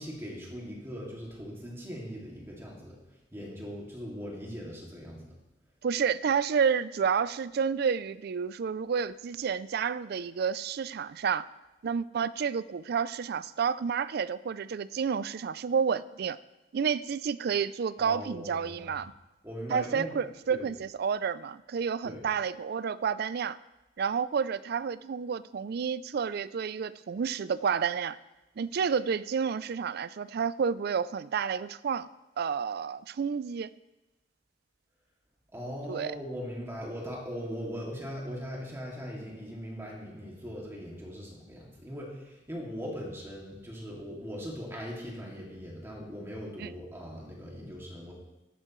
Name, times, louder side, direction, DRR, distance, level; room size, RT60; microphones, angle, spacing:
voice 1, 0.0-3.0 3.3-5.3 18.0-18.9 19.4-20.1 20.5-20.7 22.0-22.2 35.5-48.1, equal, 15° right, -3 dB, 2.3 m, -40 dB
voice 2, 5.8-11.5 11.8-16.4 16.7-19.1 19.7-23.6 24.0-28.2 28.6-32.1 32.4-33.7 35.9-36.1 46.6-46.7, right 6 dB, 60° right, 17 dB, 0.4 m, -30 dB
13.5 x 11.0 x 3.1 m, 1.0 s
head